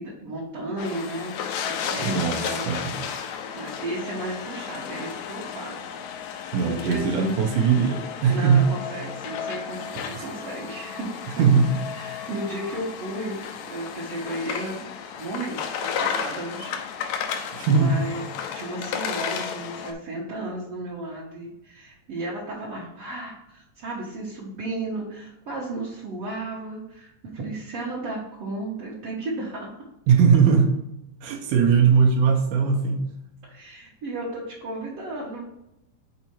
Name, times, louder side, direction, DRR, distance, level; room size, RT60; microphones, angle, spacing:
voice 1, 0.0-1.4 1.7-2.7 3.5-7.1 8.3-11.1 11.9-14.9 15.2-16.8 17.1-29.7 33.4-35.4, right 2 dB, 55° right, -7 dB, 2.1 m, -34 dB
sound 1, 0.8-19.9, left 7 dB, 75° left, 1.8 m, -33 dB
voice 2, 2.0-3.0 6.5-8.6 10.1-10.2 11.4-11.8 17.5-18.1 30.1-30.7 31.2-33.1, right 6 dB, 75° right, 0 dB, 2.2 m, -20 dB
6.6 x 4.4 x 4.4 m, 0.85 s
omnidirectional pair, 3.6 m